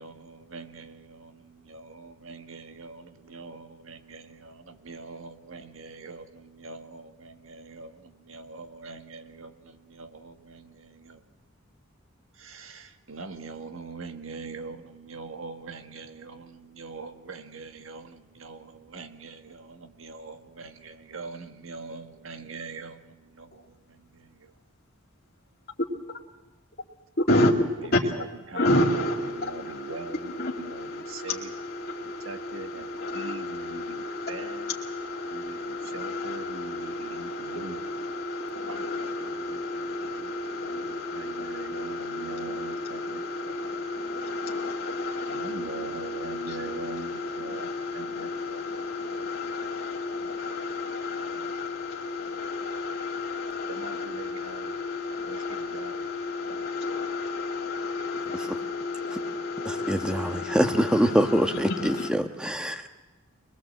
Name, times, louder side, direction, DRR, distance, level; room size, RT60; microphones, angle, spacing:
voice 1, 0.0-11.3 12.3-24.6 27.8-31.5 32.0-34.8 35.3-38.0 38.7-43.6 45.2-48.6 49.6-49.7 51.3-51.5 53.7-54.7 55.2-56.1, right 4 dB, 75° right, 1.6 m, -43 dB
voice 2, 27.2-27.5 27.9-28.0 28.5-62.1, left 2 dB, 50° left, 2.3 m, -31 dB
voice 3, 59.6-62.9, equal, 5° right, 1.2 m, -25 dB
24.5 x 20.5 x 7.6 m
head